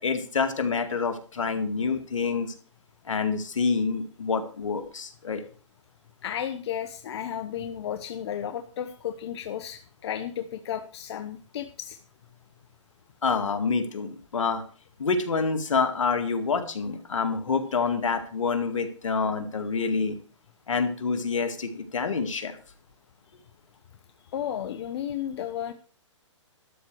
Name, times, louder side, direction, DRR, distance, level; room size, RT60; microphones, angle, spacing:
voice 1, 0.0-2.5 3.1-5.4 13.2-14.6 15.0-20.2 20.7-22.6, left 5 dB, 85° left, 7 dB, 2.0 m, -27 dB
voice 2, 6.2-12.0 24.3-25.7, left 9 dB, 55° left, 8 dB, 1.0 m, -33 dB
12.5 x 4.5 x 7.8 m, 0.41 s
hypercardioid pair, 140°, 16 cm